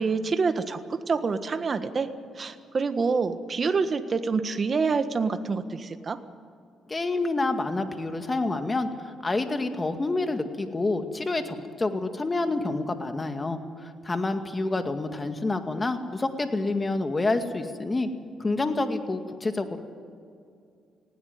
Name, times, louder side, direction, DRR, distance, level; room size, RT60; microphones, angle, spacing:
voice 1, 0.0-2.1 2.4-6.2, right 4 dB, 40° right, 10 dB, 1.5 m, -27 dB
voice 2, 6.9-18.1 18.4-19.8, left 2 dB, 25° left, 7 dB, 2.1 m, -28 dB
20.0 x 17.0 x 9.5 m, 2.4 s
cardioid pair, 90°, 0 cm